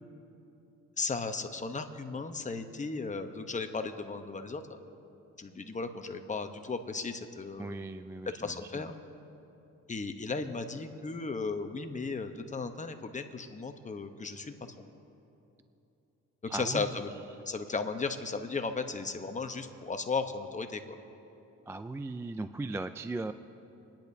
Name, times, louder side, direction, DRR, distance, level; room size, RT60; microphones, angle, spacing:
voice 1, 1.0-4.6 5.4-7.8 8.4-8.9 9.9-14.8 16.5-17.1 17.5-20.8, left 4 dB, 25° left, 7 dB, 0.9 m, -35 dB
voice 2, 7.6-8.8 16.5-16.9 21.7-23.3, right 2 dB, 10° right, 10 dB, 0.3 m, -38 dB
29.0 x 10.5 x 2.7 m, 2.9 s
cardioid pair, 90°, 30 cm